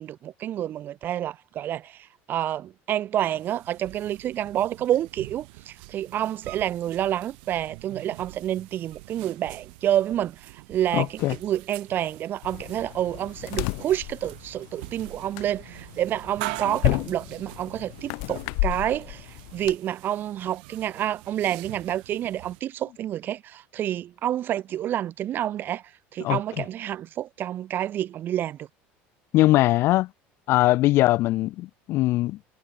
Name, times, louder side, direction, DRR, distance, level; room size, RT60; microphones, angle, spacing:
voice 1, 0.0-25.8 26.1-28.7, right 11 dB, 45° right, 0.7 m, -28 dB
sound 1, 3.2-22.6, right 27 dB, 85° right, 4.5 m, -44 dB
voice 2, 10.9-11.4 26.2-26.4 29.3-30.1 30.5-32.4, left 17 dB, 55° left, 0.4 m, -21 dB
sound 2, 12.4-19.8, left 36 dB, 75° left, 4.3 m, -32 dB
cardioid pair, 125°, 5 cm